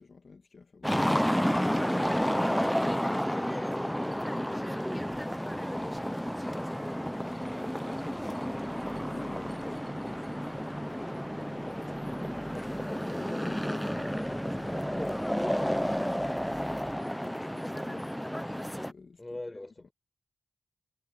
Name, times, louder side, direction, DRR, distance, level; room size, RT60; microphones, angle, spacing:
voice 1, 0.0-1.8 9.1-11.7 13.0-14.1 14.5-16.8 17.3-18.0 18.9-19.2 19.5-19.6, left 4 dB, 65° left, 1.9 m, -50 dB
sound 1, 0.8-18.9, equal, 5° left, 0.6 m, -31 dB
voice 2, 2.3-9.9 12.0-13.9 14.5-15.4 17.6-17.9 19.2-19.9, left 2 dB, 25° left, 5.9 m, -47 dB
sound 2, 4.9-17.0, right 2 dB, 25° right, 0.8 m, -47 dB
sound 3, 5.7-13.7, right 3 dB, 50° right, 2.9 m, -56 dB
cardioid pair, 50°, 0 cm